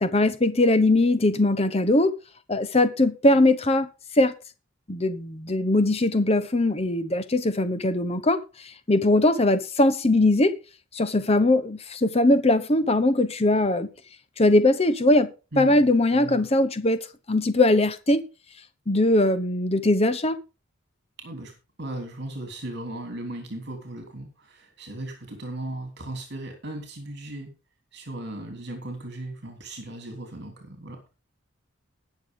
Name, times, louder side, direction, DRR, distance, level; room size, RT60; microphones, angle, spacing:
voice 1, 0.0-2.1 2.5-3.9 4.2-4.3 4.9-8.4 8.9-10.5 10.9-13.9 14.4-15.3 15.6-18.2 18.9-20.4, left 2 dB, 30° left, 1.0 m, -21 dB
voice 2, 15.5-15.8 16.1-16.5 21.2-21.5 21.8-27.5 27.9-31.1, right 1 dB, 55° right, 3.2 m, -37 dB
20.0 x 6.8 x 3.7 m
head